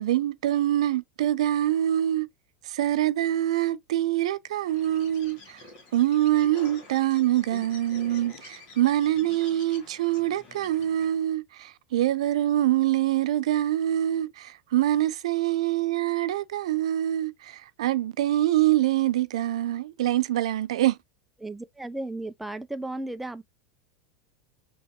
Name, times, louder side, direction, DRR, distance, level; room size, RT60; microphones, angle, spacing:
voice 1, 0.0-2.3 2.6-5.7 5.9-21.0, right 13 dB, 85° right, 0.4 m, -25 dB
Bird, 4.6-11.2, left 3 dB, 55° left, 1.8 m, -48 dB
voice 2, 21.4-23.4, right 2 dB, 5° right, 0.3 m, -35 dB
3.4 x 3.0 x 2.7 m
supercardioid pair, 125°, 3 cm